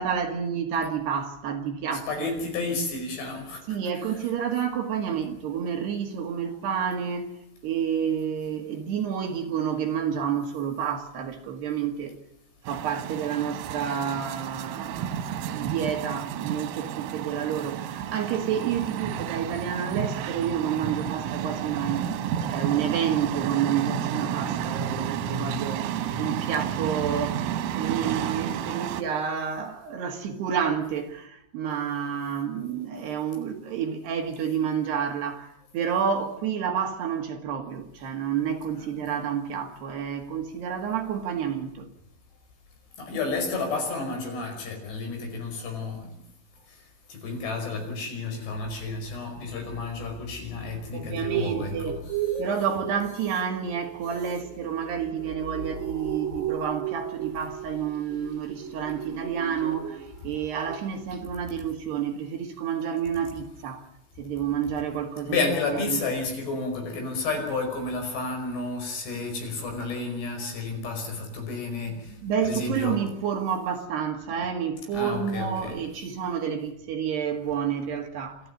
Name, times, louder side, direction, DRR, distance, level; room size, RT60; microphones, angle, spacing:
voice 1, 0.0-2.3 3.7-7.3 7.6-12.1 12.7-22.1 22.5-25.9 26.2-41.9 50.9-52.0 52.4-63.9 64.2-65.4 65.9-66.0 71.9-78.5, right 8 dB, 60° right, 3.7 m, -29 dB
voice 2, 2.1-3.6 38.8-38.9 39.1-39.2 43.0-46.1 46.7-46.8 47.1-52.4 65.3-72.1 72.4-73.0 74.9-75.8, left 3 dB, 60° left, 7.2 m, -31 dB
sound 1, 12.7-29.0, right 9 dB, 90° right, 4.1 m, -31 dB
sound 2, 51.0-60.2 60.5-60.8 61.1-61.2, right 10 dB, 40° right, 1.8 m, -35 dB
28.5 x 12.5 x 9.8 m
omnidirectional pair, 5.7 m